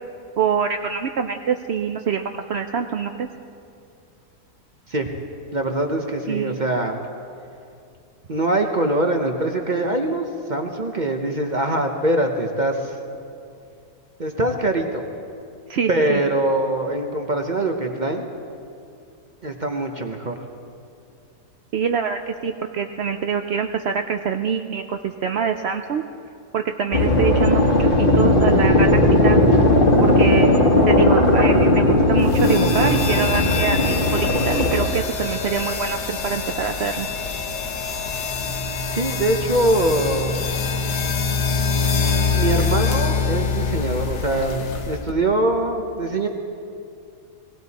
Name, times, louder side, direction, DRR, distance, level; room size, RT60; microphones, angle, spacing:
voice 1, 0.4-3.3 6.3-6.6 15.7-16.2 21.7-26.0 26.5-27.9 28.1-29.4 30.0-37.1, right 6 dB, 85° right, 6 dB, 0.5 m, -25 dB
voice 2, 5.5-7.0 8.3-12.9 14.2-15.1 15.9-18.3 19.4-20.4 38.9-40.3 42.3-46.3, right 1 dB, 35° right, 3 dB, 0.8 m, -23 dB
sound 1, 26.9-34.9, left 1 dB, 35° left, 1.5 m, -17 dB
sound 2, 32.3-45.1, left 5 dB, 75° left, 1.7 m, -25 dB
20.0 x 16.5 x 4.1 m, 2.5 s
omnidirectional pair, 1.8 m